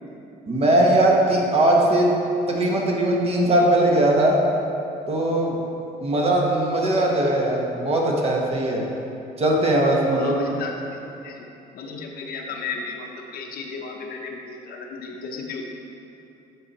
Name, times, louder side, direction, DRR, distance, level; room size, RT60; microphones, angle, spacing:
voice 1, 0.5-2.1 2.5-4.4 5.1-5.6 6.0-8.8 9.4-10.3, right 1 dB, 35° right, -1 dB, 1.2 m, -20 dB
voice 2, 10.2-11.5 11.7-15.6, left 4 dB, 65° left, 1 dB, 0.9 m, -34 dB
9.3 x 4.2 x 4.2 m, 2.8 s
cardioid pair, 110°, 17 cm